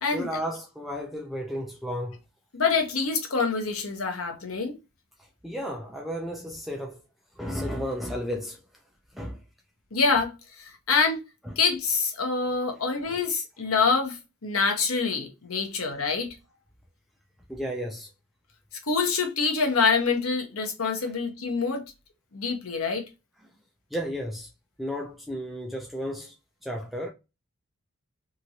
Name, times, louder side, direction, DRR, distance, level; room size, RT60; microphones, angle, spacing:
voice 1, 0.1-2.2 5.2-7.0 7.4-8.6 9.1-9.4 11.4-11.6 13.1-13.2 17.5-18.1 21.0-21.1 23.4-23.5 23.9-24.5 24.8-26.3 26.6-27.1, equal, ahead, 0.4 m, -33 dB
voice 2, 2.5-4.7 9.9-10.3 10.6-11.2 11.6-16.3 18.9-21.8 22.3-23.0, left 4 dB, 80° left, 0.9 m, -26 dB
2.9 x 2.5 x 2.8 m
head